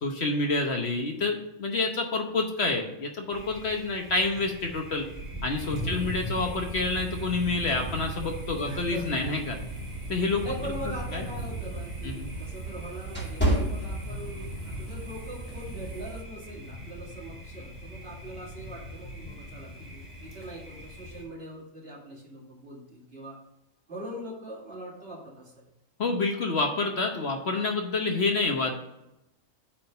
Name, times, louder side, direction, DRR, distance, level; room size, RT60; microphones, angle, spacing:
voice 1, 0.0-5.0 5.4-9.6 10.1-10.4 11.1-11.2 12.0-12.3 26.0-28.8, left 3 dB, 55° left, 3 dB, 1.1 m, -28 dB
Thunder, 3.3-21.2, equal, 10° right, 2.8 m, -40 dB
sound 1, 5.6-16.2, right 4 dB, 75° right, 1.6 m, -40 dB
voice 2, 5.8-6.2 8.6-9.1 10.4-23.4 23.9-25.7, right 1 dB, 50° right, -5 dB, 2.7 m, -42 dB
sound 2, 11.7-14.6 15.0-15.3 15.9-16.1, right 1 dB, 10° left, 1.9 m, -29 dB
8.6 x 3.8 x 5.4 m, 0.87 s
omnidirectional pair, 1.4 m